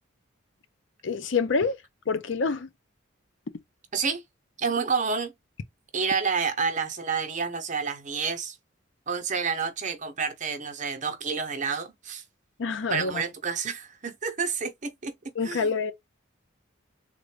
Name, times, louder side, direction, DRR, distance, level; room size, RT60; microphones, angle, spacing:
voice 1, 1.0-1.8 2.1-2.7 12.6-13.2 15.4-15.9, left 4 dB, 65° left, 0.5 m, -26 dB
voice 2, 4.6-5.3 5.9-8.6 9.1-12.2 12.9-15.1 15.4-15.7, right 5 dB, 35° right, 0.7 m, -29 dB
3.7 x 2.2 x 3.1 m
head